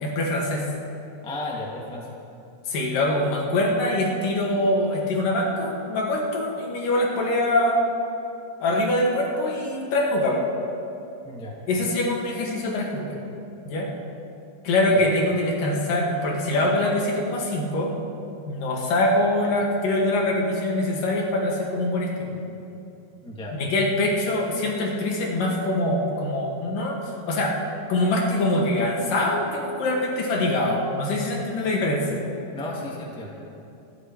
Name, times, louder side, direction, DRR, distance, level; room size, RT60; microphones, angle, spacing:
voice 1, 0.0-0.7 2.7-7.8 8.6-10.4 11.7-13.2 13.7-13.9 14.6-17.9 18.5-22.4 23.6-27.6 27.9-32.2, left 1 dB, 60° left, -2 dB, 3.5 m, -24 dB
voice 2, 1.2-2.1 11.2-11.6 14.9-15.0 23.2-23.5 32.5-33.3, left 1 dB, 5° left, -3 dB, 0.5 m, -34 dB
26.0 x 10.5 x 4.8 m, 2.7 s
omnidirectional pair, 4.7 m